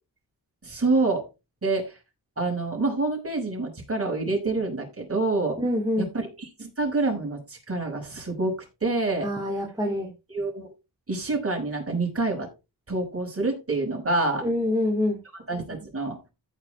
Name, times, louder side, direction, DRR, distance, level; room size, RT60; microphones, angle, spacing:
voice 1, 0.6-1.2 1.6-1.9 2.4-5.6 6.0-8.6 8.8-9.3 10.3-10.7 11.1-12.5 12.9-14.4 15.5-16.2, right 3 dB, 35° right, 0 dB, 5.7 m, -27 dB
voice 2, 5.6-6.1 9.2-10.1 14.4-15.2, left 1 dB, 10° right, -2 dB, 2.6 m, -25 dB
14.5 x 5.8 x 3.7 m, 0.27 s
wide cardioid pair, 110°, 39 cm